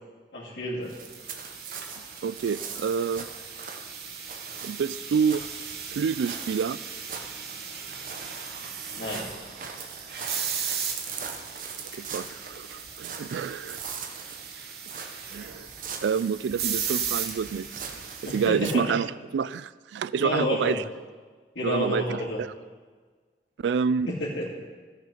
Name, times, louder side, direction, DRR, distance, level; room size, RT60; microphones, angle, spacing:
voice 1, 0.3-1.0 9.0-9.3 18.2-19.0 20.2-20.8 21.5-22.4 24.1-24.6, left 1 dB, 90° left, -8 dB, 2.2 m, -30 dB
sound 1, 0.9-18.7, right 5 dB, 50° right, 0.9 m, -41 dB
sound 2, 1.0-18.5, right 7 dB, 65° right, 1.2 m, -37 dB
voice 2, 2.2-3.3 4.6-5.5 5.9-6.8 12.0-13.8 15.3-15.7 16.0-17.7 18.2-20.8 21.6-22.5 23.6-24.1, right 6 dB, 90° right, 18 dB, 0.3 m, -28 dB
14.0 x 6.6 x 5.0 m, 1.5 s
head